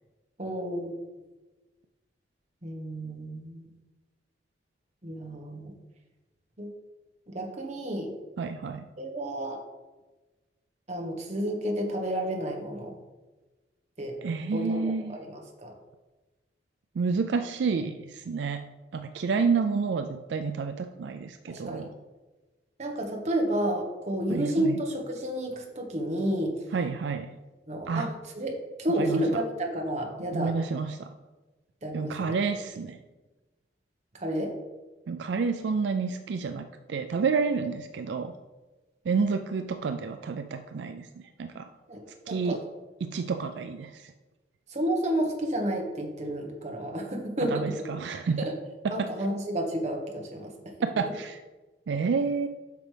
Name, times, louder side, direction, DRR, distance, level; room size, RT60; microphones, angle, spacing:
voice 1, 0.4-1.0 2.6-3.6 5.0-5.7 6.6-6.7 7.3-8.1 9.0-9.6 10.9-13.0 14.0-14.2 14.5-15.7 21.5-21.9 22.8-26.6 27.7-28.5 28.8-30.5 31.8-32.3 34.2-34.5 41.9-42.6 44.7-47.7 48.4-48.5 48.9-50.5, right 1 dB, 40° right, 1 dB, 1.2 m, -31 dB
voice 2, 8.4-8.8 14.2-15.2 17.0-18.6 18.9-21.9 24.3-24.8 26.7-27.3 27.9-28.1 29.0-29.2 30.3-31.1 31.9-33.0 35.1-38.3 39.1-41.7 42.3-42.6 43.0-44.1 47.5-48.4 48.8-49.1 50.9-51.4 51.9-52.5, right 5 dB, 75° right, 8 dB, 0.4 m, -29 dB
8.2 x 6.0 x 3.4 m, 1.2 s
head